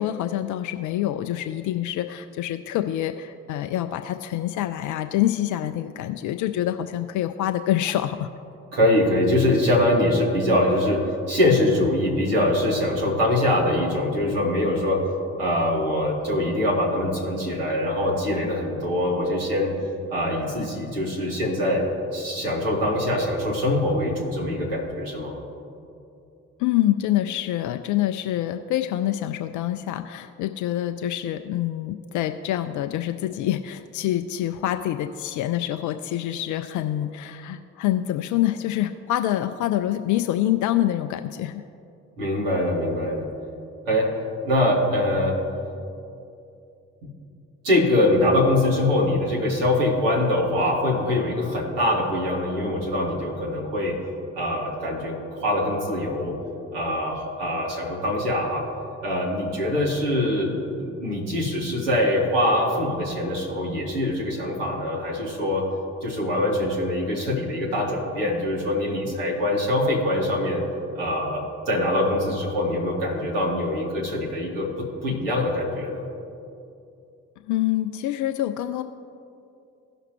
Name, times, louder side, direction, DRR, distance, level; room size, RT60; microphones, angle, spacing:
voice 1, 0.0-8.3 26.6-41.6 77.5-78.8, left 13 dB, 50° left, 8 dB, 0.5 m, -26 dB
voice 2, 8.7-15.0 15.4-19.7 20.1-21.8 22.1-25.4 42.2-43.3 43.9-44.1 44.4-45.4 47.6-54.0 54.3-56.4 56.7-58.7 59.0-60.5 60.8-65.7 66.0-70.6 70.9-76.0, left 1 dB, 75° right, -3 dB, 1.9 m, -23 dB
17.5 x 5.8 x 3.0 m, 2.6 s
figure-of-eight pair, 45°, 37 cm